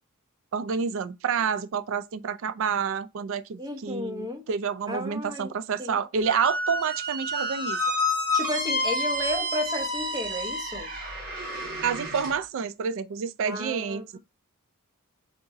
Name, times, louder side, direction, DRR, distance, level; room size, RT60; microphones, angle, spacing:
voice 1, 0.5-7.8 11.8-14.2, right 6 dB, 60° right, 0.4 m, -29 dB
voice 2, 3.6-4.4 4.9-5.5 5.8-6.0 8.3-10.9 13.4-14.2, left 1 dB, 20° right, 1.0 m, -33 dB
Squeak, 6.3-12.3, left 1 dB, 45° right, 2.2 m, -29 dB
3.9 x 3.5 x 3.8 m
head